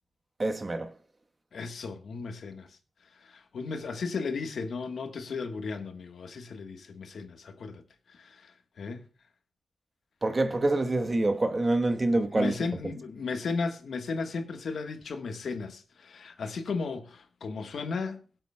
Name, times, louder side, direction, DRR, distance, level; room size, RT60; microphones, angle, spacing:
voice 1, 0.4-0.9 10.2-12.5, right 2 dB, 30° right, 1.1 m, -26 dB
voice 2, 1.5-9.1 12.1-18.2, left 4 dB, 85° left, 1.3 m, -35 dB
22.0 x 8.0 x 2.2 m
wide cardioid pair, 95°, 0 cm